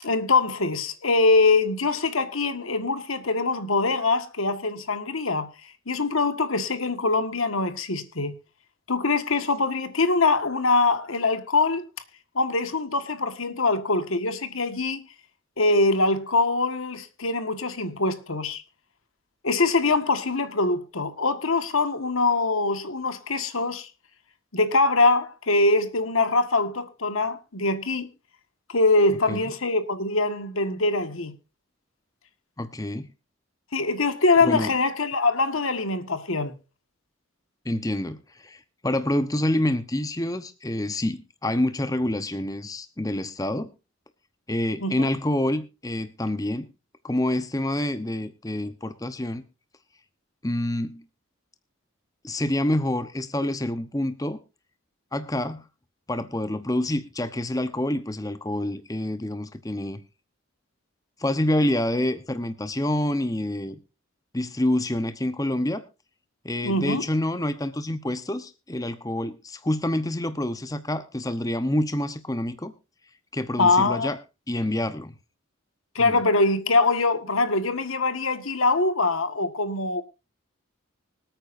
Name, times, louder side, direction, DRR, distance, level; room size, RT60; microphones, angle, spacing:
voice 1, 0.0-5.5 5.9-8.4 8.9-11.8 12.3-15.0 15.6-18.6 19.4-23.9 24.5-28.1 28.7-31.3 33.7-36.5 44.8-45.1 66.6-67.0 73.6-74.1 75.9-80.0, left 3 dB, 85° left, 1.6 m, -23 dB
voice 2, 32.6-33.1 34.4-34.7 37.6-43.7 44.5-46.7 47.0-49.4 50.4-51.0 52.2-54.4 55.1-55.7 56.1-60.0 61.2-63.8 64.3-65.8 66.4-72.7 73.3-74.2 74.5-75.1 76.0-76.2, left 1 dB, 15° left, 0.9 m, -27 dB
25.0 x 9.0 x 2.6 m
head